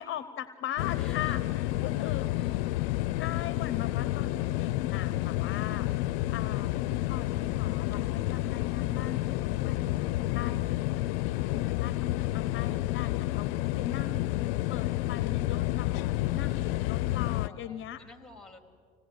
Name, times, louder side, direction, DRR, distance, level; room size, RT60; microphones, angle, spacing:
voice 1, 0.0-2.3 3.2-5.9 6.3-6.7 7.0-13.5 13.7-18.0, left 11 dB, 40° left, 14 dB, 0.8 m, -40 dB
sound 1, 0.8-17.5, left 16 dB, 70° left, 0.6 m, -30 dB
voice 2, 1.0-1.4 1.8-3.0 17.3-18.6, left 2 dB, ahead, 6 dB, 3.3 m, -53 dB
25.5 x 18.5 x 8.1 m, 2.1 s
hypercardioid pair, 85°, 30 cm